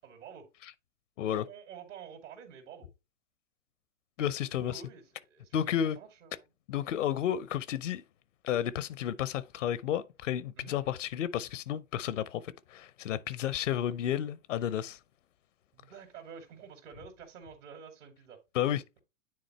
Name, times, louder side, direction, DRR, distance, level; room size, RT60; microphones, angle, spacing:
voice 1, 0.0-0.5 1.3-2.9 4.5-6.5 10.6-10.8 13.7-13.8 15.7-18.4, right 7 dB, 70° right, 2.3 m, -49 dB
voice 2, 4.2-4.8 5.5-6.0 6.7-8.0 8.4-12.4 12.7-15.0 18.5-19.0, left 10 dB, 70° left, 0.7 m, -32 dB
9.6 x 3.8 x 3.0 m
hypercardioid pair, 110°, 38 cm